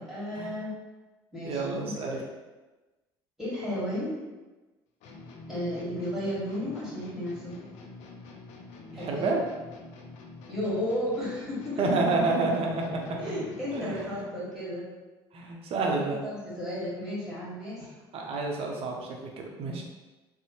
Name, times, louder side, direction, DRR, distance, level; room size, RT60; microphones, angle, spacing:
voice 1, 0.1-0.7 1.3-2.3 3.4-4.1 5.5-7.6 8.9-9.3 10.5-12.2 13.2-14.9 15.7-17.9, equal, 5° right, -10 dB, 1.5 m, -34 dB
voice 2, 1.4-2.2 8.9-9.4 11.8-13.4 13.7-14.2 15.3-16.2 18.1-19.8, right 3 dB, 50° right, 0 dB, 0.6 m, -29 dB
sound 1, 5.0-14.4, left 3 dB, 65° left, 0.4 m, -47 dB
2.7 x 2.0 x 2.9 m, 1.2 s
hypercardioid pair, 65°, 13 cm